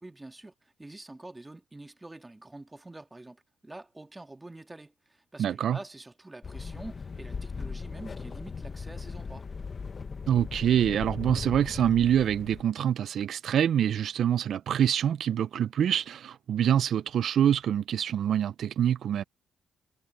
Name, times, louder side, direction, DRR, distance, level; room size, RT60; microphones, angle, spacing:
voice 1, 0.0-9.5, right 2 dB, 15° right, 1.8 m, -46 dB
voice 2, 5.4-5.8 10.3-19.2, right 9 dB, 65° right, 0.4 m, -25 dB
sound 1, 6.4-12.6, left 5 dB, 35° left, 1.2 m, -38 dB
cardioid pair, 90°, 0 cm